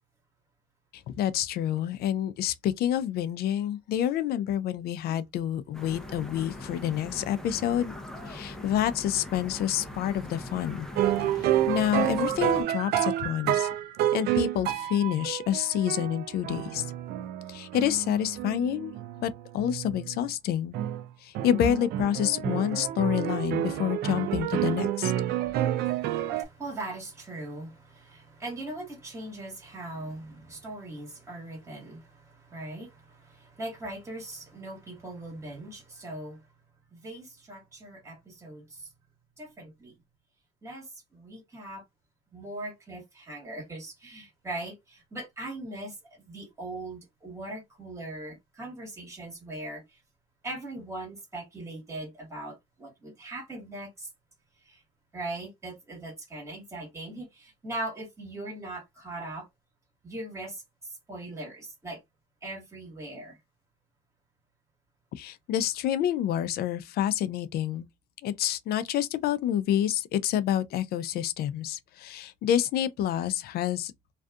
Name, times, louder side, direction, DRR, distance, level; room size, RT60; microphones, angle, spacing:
voice 1, 0.9-7.9 8.3-10.9 11.4-13.7 14.1-16.9 17.5-18.9 19.2-20.8 21.2-25.1 65.2-67.9 68.2-73.9, left 10 dB, 65° left, 0.4 m, -28 dB
sound 1, 5.7-12.6, left 1 dB, 5° left, 0.6 m, -41 dB
sound 2, 11.0-20.3 20.7-21.0 21.3-26.4, right 12 dB, 70° right, 0.4 m, -29 dB
voice 2, 25.4-36.5 36.9-38.9 39.4-40.0 40.6-41.8 42.3-50.0 50.4-54.1 54.6-54.8 55.1-59.5 60.0-60.6 61.1-62.0 62.4-63.4, right 2 dB, 15° right, 1.4 m, -40 dB
2.6 x 2.4 x 2.3 m
cardioid pair, 110°, 17 cm